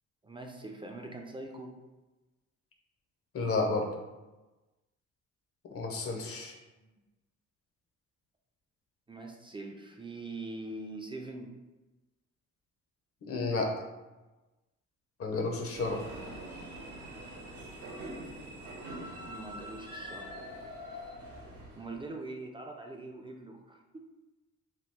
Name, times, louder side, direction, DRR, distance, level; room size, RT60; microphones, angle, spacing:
voice 1, 0.2-1.8 9.1-11.5 19.2-20.3 21.7-24.0, right 2 dB, 15° right, 2 dB, 0.3 m, -43 dB
voice 2, 3.3-3.9 5.7-6.5 13.2-13.7 15.2-16.0, left 3 dB, 50° left, 2 dB, 0.7 m, -31 dB
sound 1, 15.7-22.0, equal, 85° right, 0.8 m, -44 dB
3.0 x 2.3 x 3.4 m, 1.1 s
cardioid pair, 90°, 30 cm